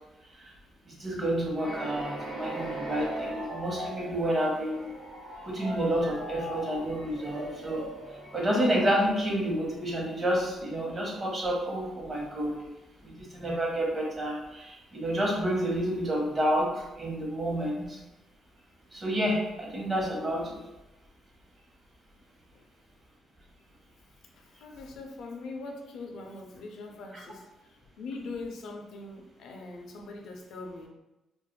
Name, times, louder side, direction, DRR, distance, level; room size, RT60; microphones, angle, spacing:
voice 1, 1.0-4.9 5.4-7.8 8.3-12.6 13.0-18.0 18.9-20.6, equal, 35° right, -2 dB, 0.9 m, -29 dB
sound 1, 1.6-10.3, right 1 dB, 75° right, 0.9 m, -40 dB
voice 2, 24.4-30.9, left 3 dB, 75° left, 2 dB, 0.4 m, -42 dB
2.3 x 2.1 x 3.1 m, 0.99 s
cardioid pair, 90°, 0 cm